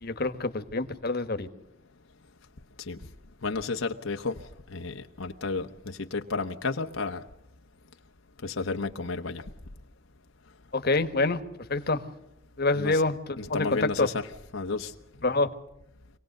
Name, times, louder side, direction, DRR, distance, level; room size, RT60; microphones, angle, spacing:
voice 1, 0.0-1.5 10.7-11.4 11.7-12.0 12.6-13.2 13.5-14.1 15.2-15.5, left 3 dB, 50° left, 9 dB, 1.5 m, -26 dB
voice 2, 3.4-4.4 4.7-7.2 8.4-9.4 12.7-13.0 13.4-14.9, left 3 dB, 80° left, 4 dB, 1.1 m, -32 dB
26.0 x 18.5 x 6.6 m, 0.87 s
head